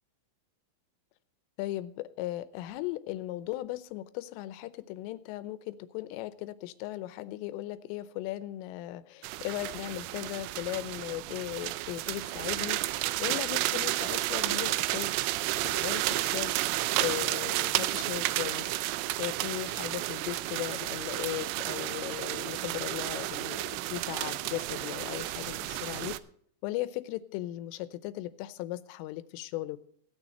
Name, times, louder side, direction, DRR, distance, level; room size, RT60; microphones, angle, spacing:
voice 1, 1.6-15.2 15.6-16.5 17.0-18.7 19.2-26.2 26.6-29.8, left 15 dB, 85° left, 14 dB, 3.3 m, -37 dB
sound 1, 9.2-26.2, right 17 dB, 85° right, 3.2 m, -32 dB
17.0 x 9.1 x 4.2 m, 0.65 s
omnidirectional pair, 5.7 m